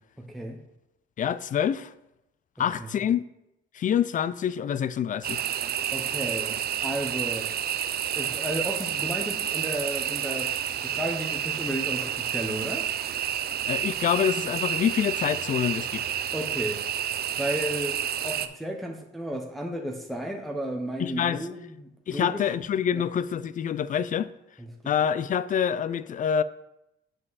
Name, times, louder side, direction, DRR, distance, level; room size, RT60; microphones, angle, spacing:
voice 1, 1.2-1.9 2.6-3.2 3.7-5.4 13.7-16.0 21.0-21.4 22.1-24.3 24.9-26.4, left 8 dB, 40° left, 0.4 m, -26 dB
sound 1, 5.2-18.5, right 10 dB, 50° right, 0.5 m, -30 dB
voice 2, 5.9-7.5 8.2-10.5 10.8-12.9 16.3-16.8 17.4-22.5 22.9-23.1 24.6-24.7, right 1 dB, ahead, 0.8 m, -33 dB
7.5 x 5.0 x 4.1 m
cardioid pair, 90°, 20 cm